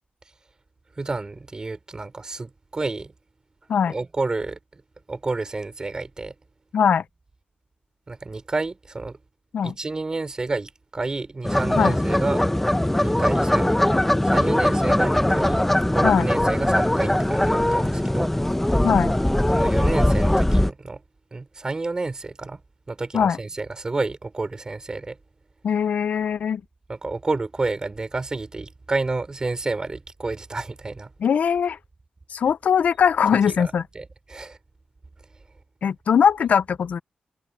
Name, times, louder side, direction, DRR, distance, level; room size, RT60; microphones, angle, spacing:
voice 1, 1.0-3.1 3.9-4.8 5.1-6.3 8.1-9.2 9.6-12.4 13.0-18.3 19.5-21.0 21.3-22.6 22.9-25.2 26.9-31.1 33.5-34.6, right 3 dB, 25° right, 4.5 m, -30 dB
voice 2, 6.7-7.0 9.5-9.7 11.8-11.9 16.0-16.3 18.8-19.1 23.1-23.4 25.6-26.6 31.2-31.8 32.3-33.8 35.8-37.0, left 7 dB, 65° left, 0.7 m, -20 dB
sound 1, 11.4-20.7, left 1 dB, 10° left, 1.0 m, -21 dB
wide cardioid pair, 110°, 3 cm